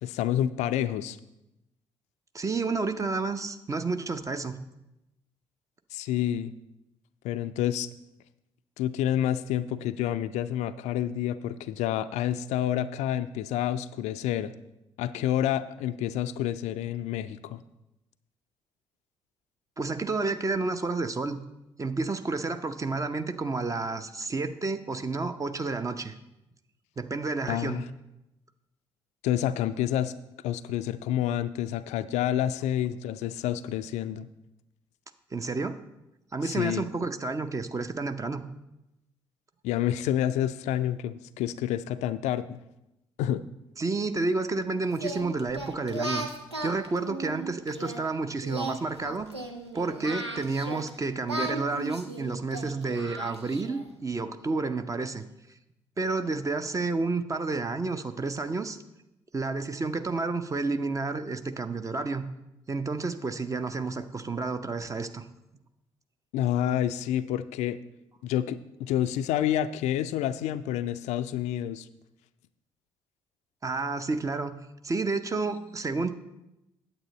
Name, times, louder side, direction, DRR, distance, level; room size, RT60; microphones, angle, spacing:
voice 1, 0.0-1.2 5.9-6.5 7.2-7.9 8.8-14.5 15.0-17.6 27.5-27.8 29.2-30.1 30.4-34.3 36.4-36.9 39.6-42.6 43.2-43.4 66.3-67.8 68.2-71.9, left 11 dB, 55° left, 12 dB, 0.4 m, -28 dB
voice 2, 2.3-4.5 19.8-21.4 21.8-26.2 27.0-27.8 35.3-35.8 36.3-38.4 43.8-46.2 46.6-49.3 49.7-55.2 56.0-58.8 59.3-62.2 62.7-65.3 73.6-74.6 74.8-76.1, right 3 dB, 25° right, 9 dB, 0.7 m, -30 dB
Singing, 44.9-48.0 48.4-50.9 51.3-53.9, right 1 dB, 90° right, 0.6 m, -36 dB
9.0 x 8.2 x 4.1 m, 0.91 s
figure-of-eight pair, 45°, 14 cm